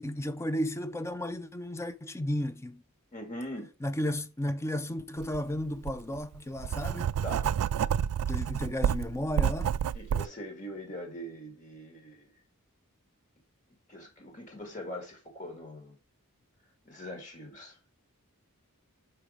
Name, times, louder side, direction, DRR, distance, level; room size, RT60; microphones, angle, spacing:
voice 1, 0.0-2.8 3.8-7.1 8.3-9.7, left 1 dB, 10° left, 0.4 m, -33 dB
voice 2, 3.1-3.7 7.2-7.5 9.9-12.3 13.9-16.0 16.9-17.8, equal, 35° left, 1.9 m, -42 dB
Writing, 5.2-5.4 5.8-10.3, right 8 dB, 85° right, 0.3 m, -29 dB
5.7 x 4.7 x 5.0 m
head